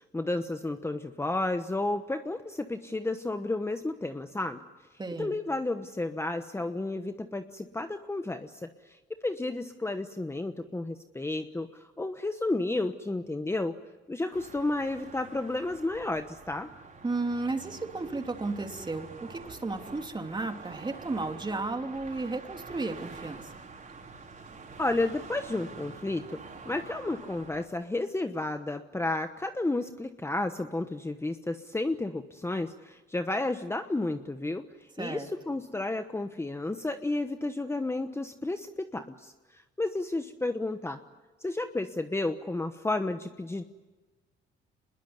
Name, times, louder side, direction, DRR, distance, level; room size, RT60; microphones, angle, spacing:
voice 1, 0.0-4.6 5.2-9.0 9.2-13.8 14.1-16.7 24.8-26.4 26.6-34.6 35.0-41.0 41.4-43.6, left 2 dB, 15° left, 8 dB, 1.1 m, -32 dB
voice 2, 5.0-5.4 17.0-23.4 35.0-35.3, right 3 dB, 20° right, 5 dB, 3.0 m, -33 dB
sound 1, 14.3-27.6, right 4 dB, 40° right, 5.3 m, -47 dB
25.5 x 21.0 x 9.6 m, 1.2 s
cardioid pair, 90°, 20 cm